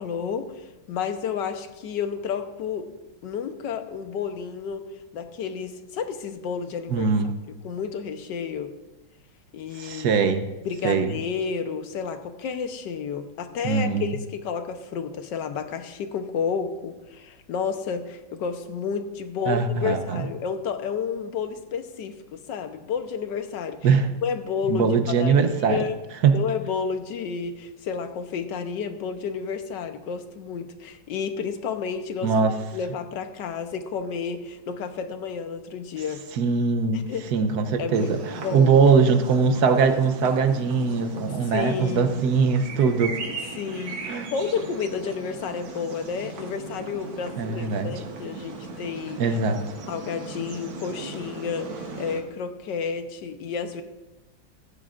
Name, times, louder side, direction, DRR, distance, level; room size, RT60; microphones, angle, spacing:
voice 1, 0.0-2.9 3.2-4.8 5.1-8.7 9.5-10.2 10.6-23.9 24.2-26.0 26.3-36.2 36.9-37.2 37.8-38.7 41.5-42.1 43.6-49.2 49.9-53.8, left 6 dB, 65° left, 8 dB, 1.5 m, -31 dB
voice 2, 6.9-7.3 9.8-10.5 10.8-11.1 13.6-14.1 19.5-20.3 23.8-24.1 24.7-25.8 26.2-26.3 32.2-32.5 36.3-43.2 44.1-44.3 47.4-47.9 49.2-49.6, right 5 dB, 60° right, 8 dB, 1.2 m, -21 dB
sound 1, 37.9-52.2, right 3 dB, 80° right, 2.3 m, -38 dB
15.5 x 15.0 x 2.5 m, 1.1 s
omnidirectional pair, 2.2 m